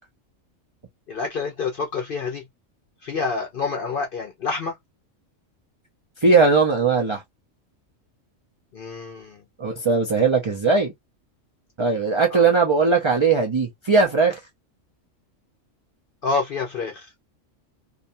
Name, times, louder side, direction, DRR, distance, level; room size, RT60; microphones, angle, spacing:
voice 1, 1.1-2.5 3.0-4.8 8.7-9.4 12.3-12.4 16.2-17.1, left 4 dB, 55° left, 0.6 m, -28 dB
voice 2, 6.2-7.2 9.6-10.9 11.8-14.4, right 4 dB, 40° right, 0.4 m, -19 dB
2.7 x 2.2 x 2.6 m
omnidirectional pair, 1.4 m